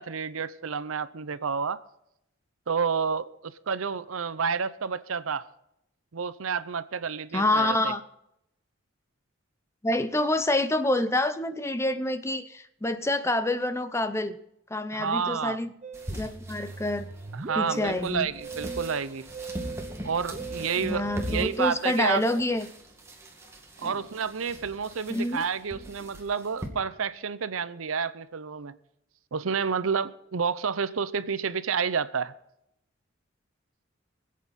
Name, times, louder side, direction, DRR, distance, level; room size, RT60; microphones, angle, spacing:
voice 1, 0.0-1.8 2.7-5.5 6.1-7.9 14.9-15.6 17.3-19.3 20.0-22.2 23.8-28.8 29.3-32.3, right 6 dB, 85° right, 15 dB, 0.7 m, -30 dB
voice 2, 7.3-8.0 9.8-14.4 14.7-15.7 16.1-17.1 17.6-18.3 20.8-22.7 23.8-23.9 25.1-25.4, left 1 dB, 15° left, 10 dB, 0.6 m, -27 dB
Musical instrument, 15.8-22.6, right 4 dB, 35° right, 0.6 m, -41 dB
sound 1, 15.9-26.7, equal, 15° right, 2.0 m, -41 dB
24.5 x 8.4 x 4.2 m, 0.81 s
head